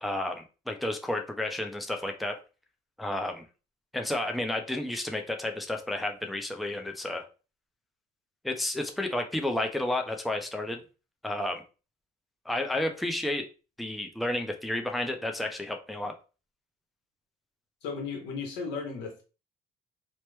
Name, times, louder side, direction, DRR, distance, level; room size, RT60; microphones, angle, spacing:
voice 1, 0.0-2.4 3.0-3.4 3.9-7.2 8.4-10.8 11.2-11.6 12.5-13.5 13.8-16.1, left 1 dB, ahead, 0.4 m, -31 dB
voice 2, 17.8-19.2, left 5 dB, 90° left, 1.1 m, -35 dB
3.0 x 2.1 x 3.2 m
cardioid pair, 110°, 17 cm